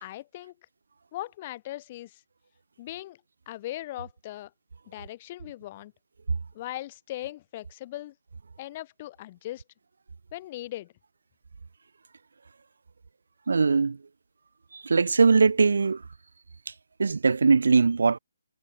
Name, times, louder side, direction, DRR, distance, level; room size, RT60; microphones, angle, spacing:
voice 1, 0.0-0.5 1.1-2.2 2.8-3.2 3.5-4.5 4.9-5.9 6.5-8.1 8.6-9.6 10.3-10.9, left 15 dB, 30° left, 1.4 m, -39 dB
voice 2, 13.5-14.0 14.9-16.0 17.0-18.2, right 4 dB, 70° right, 0.3 m, -20 dB
figure-of-eight pair, 155°, 0 cm